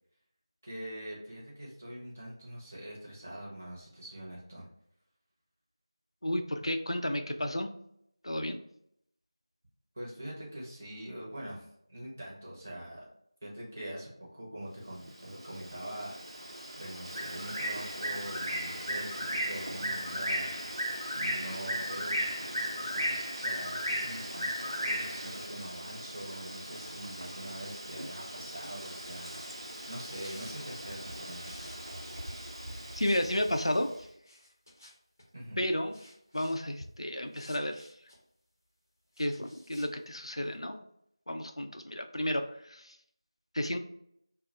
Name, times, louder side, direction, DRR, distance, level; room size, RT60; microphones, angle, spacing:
voice 1, 0.6-4.7 9.9-13.1 13.4-31.7 35.3-35.6, right 1 dB, 25° right, -5 dB, 0.7 m, -44 dB
voice 2, 6.2-7.7 8.2-8.6 32.9-33.9 35.6-36.0 36.3-37.9 39.2-40.8 41.3-43.0 43.5-43.8, left 1 dB, 85° left, 5 dB, 0.4 m, -32 dB
Bird, 15.1-33.8, equal, 75° right, 0.7 m, -37 dB
sound 1, 25.5-26.0 26.7-29.1 29.9-30.6 31.4-32.2 32.9-33.3 33.6-33.7 34.2-35.3 35.9-36.6 37.3-38.2 39.1-39.9, left 1 dB, 35° left, 0.6 m, -55 dB
2.3 x 2.0 x 2.7 m, 0.73 s
figure-of-eight pair, 170°, 3 cm